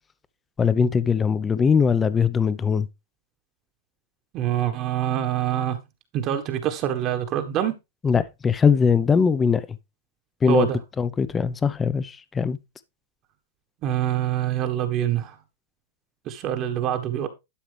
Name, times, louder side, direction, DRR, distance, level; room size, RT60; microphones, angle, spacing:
voice 1, 0.6-2.9 8.0-9.7 10.4-10.7 11.0-12.6, left 6 dB, 15° left, 0.8 m, -21 dB
voice 2, 4.3-5.8 6.1-7.7 10.5-10.8 13.8-15.4 16.2-17.3, right 11 dB, 40° right, 1.4 m, -25 dB
11.5 x 5.8 x 3.3 m
hypercardioid pair, 130°, 0 cm